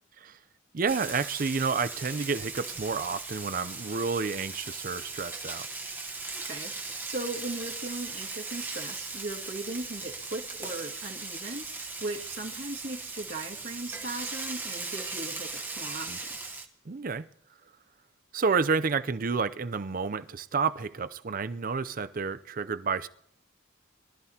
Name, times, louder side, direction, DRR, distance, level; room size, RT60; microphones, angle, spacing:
voice 1, 0.7-5.7 16.1-16.2 16.9-17.3 18.3-23.1, right 5 dB, 45° right, 0.5 m, -30 dB
Frying (food), 0.9-16.6, right 3 dB, 10° right, 1.1 m, -38 dB
voice 2, 6.3-16.4, right 2 dB, 60° right, 2.1 m, -38 dB
23.5 x 13.0 x 2.9 m
head